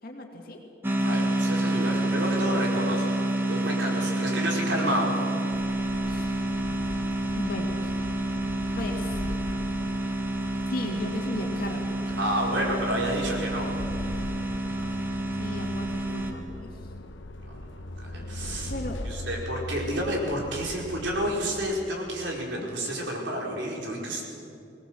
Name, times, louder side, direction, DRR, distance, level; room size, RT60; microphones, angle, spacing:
voice 1, 0.0-0.6 6.1-6.4 7.3-7.9 8.7-9.2 10.7-11.9 15.4-16.9 18.7-19.0 19.9-20.0, left 1 dB, 55° left, 2 dB, 2.2 m, -36 dB
sound 1, 0.8-16.3, right 1 dB, 10° right, 1.6 m, -29 dB
voice 2, 1.0-3.2 3.5-5.2 12.2-13.7 17.5-18.7 19.0-24.2, right 1 dB, 80° right, -2 dB, 4.8 m, -30 dB
sound 2, 5.5-21.8, left 1 dB, 85° left, 1.0 m, -39 dB
20.5 x 18.5 x 7.7 m, 2.6 s
head